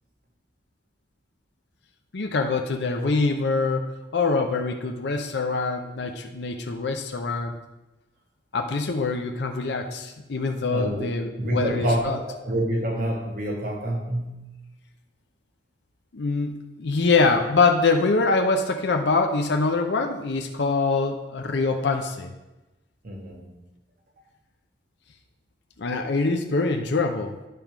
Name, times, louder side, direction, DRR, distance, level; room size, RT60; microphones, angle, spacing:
voice 1, 2.1-3.9 4.1-7.5 8.5-12.2 16.1-22.3 25.8-27.4, left 3 dB, 65° left, 4 dB, 0.6 m, -24 dB
voice 2, 10.7-11.1 11.4-14.5 23.0-23.6, right 1 dB, 50° right, 0 dB, 1.5 m, -27 dB
9.4 x 3.5 x 5.9 m, 1.0 s
head